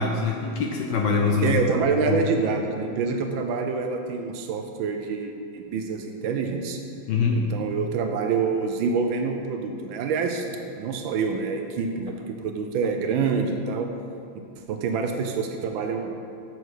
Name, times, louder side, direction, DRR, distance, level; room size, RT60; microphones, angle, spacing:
voice 1, 0.0-1.6 2.1-2.2 7.1-7.4, left 5 dB, 75° left, 1 dB, 1.0 m, -23 dB
voice 2, 1.4-6.8 7.3-13.9 14.3-14.4 14.7-16.1, right 5 dB, 75° right, 5 dB, 1.3 m, -26 dB
6.6 x 6.1 x 4.8 m, 2.4 s
omnidirectional pair, 2.3 m